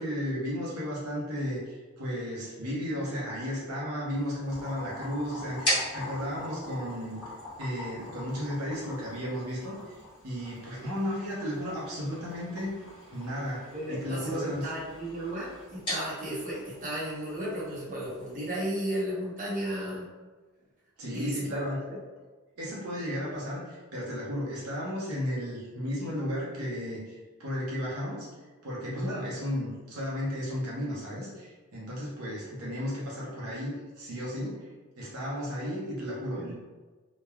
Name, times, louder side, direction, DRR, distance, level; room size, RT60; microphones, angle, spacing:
voice 1, 0.0-7.2 7.6-9.9 10.2-12.7 13.1-14.7 21.0-21.8 22.6-28.3 28.6-34.7 35.0-36.5, equal, 85° right, -5 dB, 0.8 m, -34 dB
sound 1, 4.1-18.5, equal, 25° left, 1.2 m, -40 dB
Boiling, 4.5-17.7, left 2 dB, 10° right, 0.9 m, -47 dB
voice 2, 13.7-20.1 21.1-22.0 28.9-29.2 36.3-36.5, right 1 dB, 40° right, -7 dB, 0.8 m, -34 dB
3.1 x 2.2 x 2.3 m, 1.3 s
head